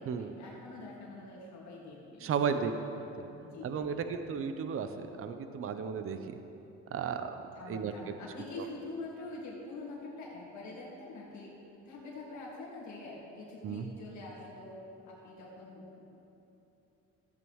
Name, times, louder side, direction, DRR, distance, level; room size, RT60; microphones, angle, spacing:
voice 1, 0.0-2.7 3.4-4.0 7.6-11.5 11.8-14.8 15.1-16.0, left 2 dB, 70° left, -4 dB, 2.0 m, -45 dB
voice 2, 2.2-2.7 3.2-3.3 3.6-6.4 6.9-7.3 7.7-7.9 13.6-13.9, right 6 dB, 45° right, 8 dB, 0.6 m, -34 dB
14.0 x 8.2 x 3.1 m, 3.0 s
cardioid pair, 90°, 30 cm